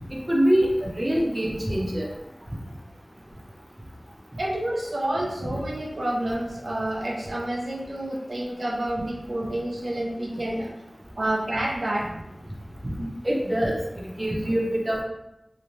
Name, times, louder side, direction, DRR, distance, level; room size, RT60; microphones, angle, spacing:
voice 1, 0.1-2.1 12.8-13.7 14.1-15.0, equal, 35° right, -2 dB, 0.6 m, -24 dB
voice 2, 4.4-10.7 11.2-12.1, right 1 dB, 90° right, -3 dB, 0.4 m, -29 dB
3.0 x 2.1 x 2.5 m, 0.93 s
wide cardioid pair, 45°, 0 cm